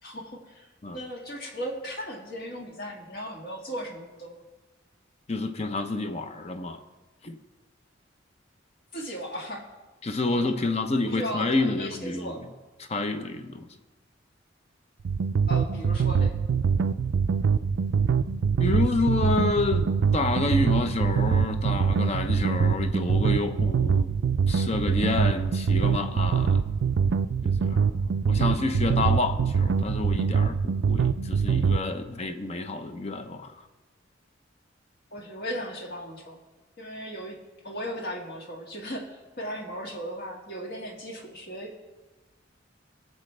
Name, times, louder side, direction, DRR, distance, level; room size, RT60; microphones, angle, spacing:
voice 1, 0.0-4.4 8.9-9.6 10.3-10.7 11.1-12.4 15.5-16.3 35.1-36.4 36.8-37.4 37.6-39.1 39.4-41.8, equal, 55° left, 1.9 m, -36 dB
voice 2, 5.3-6.8 7.2-7.4 10.0-12.4 12.9-13.7 18.6-24.1 24.5-26.7 27.4-33.5, left 3 dB, 35° left, 0.8 m, -29 dB
sound 1, 15.0-31.8, right 6 dB, 75° right, 0.4 m, -24 dB
20.5 x 7.4 x 3.3 m
head